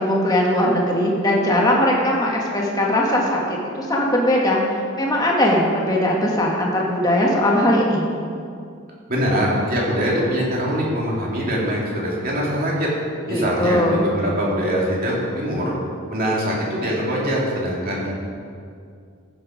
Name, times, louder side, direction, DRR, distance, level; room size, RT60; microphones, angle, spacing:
voice 1, 0.0-3.4 3.7-4.6 4.9-8.0 13.3-14.0, left 1 dB, 20° left, -3 dB, 1.7 m, -19 dB
voice 2, 9.1-12.9 13.3-15.7 16.1-18.2, equal, 40° right, -4 dB, 2.7 m, -23 dB
15.0 x 7.3 x 5.1 m, 2.3 s
head